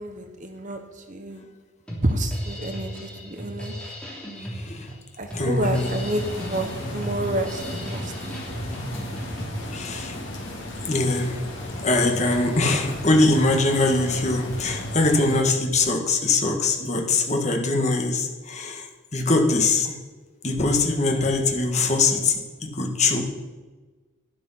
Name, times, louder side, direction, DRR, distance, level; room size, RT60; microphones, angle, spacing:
voice 1, 0.0-1.4 2.0-3.7 5.2-8.6, right 1 dB, 35° right, 6 dB, 1.2 m, -29 dB
Drum kit, 1.9-9.5, equal, 5° left, 3.1 m, -35 dB
voice 2, 4.6-4.9 5.3-5.9 9.7-10.2 10.9-11.4 11.8-18.8 19.1-20.0 20.4-22.3 22.6-23.2, left 2 dB, 35° left, 2 dB, 1.8 m, -22 dB
sound 1, 5.6-15.4, left 1 dB, 60° left, 3.5 m, -35 dB
12.0 x 11.0 x 5.8 m, 1.3 s
head